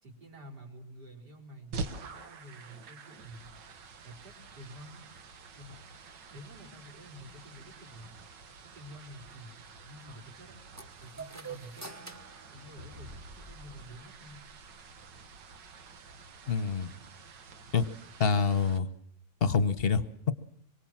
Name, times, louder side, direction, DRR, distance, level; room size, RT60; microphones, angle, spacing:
voice 1, 0.0-3.5 4.0-5.0 5.6-5.8 6.3-8.1 8.6-10.6 11.0-12.1 12.5-14.4, equal, 70° right, -1 dB, 4.7 m, -50 dB
sound 1, 1.7-18.8, right 4 dB, 85° right, 2.1 m, -47 dB
sound 2, 10.8-13.5, right 4 dB, 10° right, 0.8 m, -46 dB
sound 3, 12.8-15.5, left 2 dB, 45° right, 2.4 m, -52 dB
voice 2, 16.5-16.9 17.7-17.9 18.2-18.9 19.4-20.3, left 5 dB, 40° left, 13 dB, 1.2 m, -26 dB
25.5 x 23.5 x 7.5 m, 0.62 s
omnidirectional pair, 1.9 m